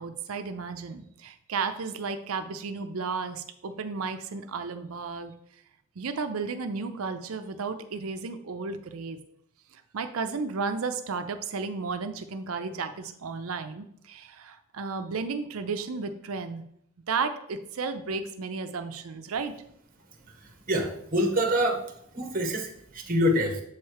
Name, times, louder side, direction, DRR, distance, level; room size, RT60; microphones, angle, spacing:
voice 1, 0.0-5.3 6.0-9.2 9.7-16.6 17.1-19.5, right 4 dB, 75° right, 8 dB, 0.5 m, -33 dB
voice 2, 20.7-21.8 22.1-23.6, equal, 40° right, 4 dB, 1.1 m, -25 dB
7.2 x 3.2 x 4.7 m, 0.71 s
head